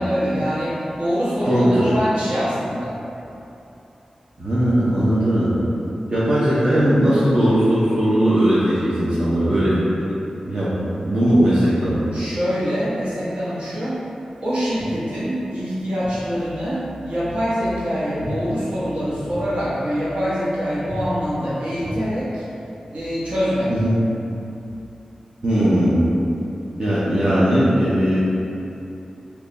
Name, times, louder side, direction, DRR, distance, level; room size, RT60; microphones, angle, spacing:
voice 1, 0.0-3.0 12.1-14.0 14.4-22.5 22.9-23.7, equal, 65° right, -10 dB, 1.1 m, -24 dB
voice 2, 1.4-1.9 4.4-5.6 6.1-9.8 10.5-10.8 11.1-12.1 23.7-24.0 25.4-26.0 26.8-28.2, equal, 40° right, -11 dB, 0.6 m, -18 dB
3.1 x 2.3 x 3.9 m, 2.8 s
wide cardioid pair, 85°, 2 cm